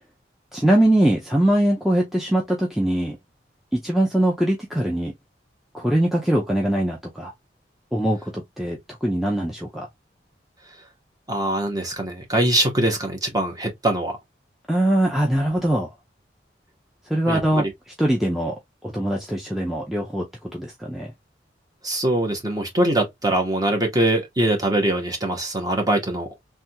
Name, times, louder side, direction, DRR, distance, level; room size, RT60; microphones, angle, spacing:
voice 1, 0.5-3.2 3.7-5.1 5.7-7.3 7.9-9.9 14.7-15.9 17.1-17.7 18.0-18.5 18.8-20.3 20.5-21.1, right 1 dB, ahead, 0.5 m, -22 dB
voice 2, 11.3-14.2 17.2-17.7 21.8-26.3, right 1 dB, 20° right, 1.0 m, -23 dB
3.4 x 2.2 x 2.7 m
head